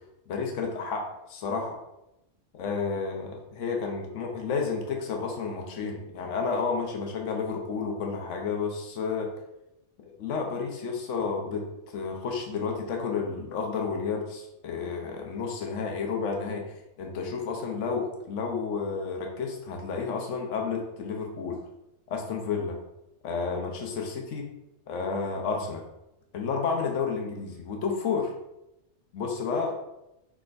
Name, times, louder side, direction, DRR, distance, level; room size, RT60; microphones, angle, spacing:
voice 1, 0.3-1.8 2.5-9.3 10.0-11.6 11.9-16.6 17.0-21.6 22.1-22.8 23.2-24.5 24.9-25.8 26.3-28.3 29.1-29.7, left 5 dB, 75° left, 2 dB, 1.1 m, -31 dB
6.1 x 3.5 x 2.5 m, 0.88 s
omnidirectional pair, 1.3 m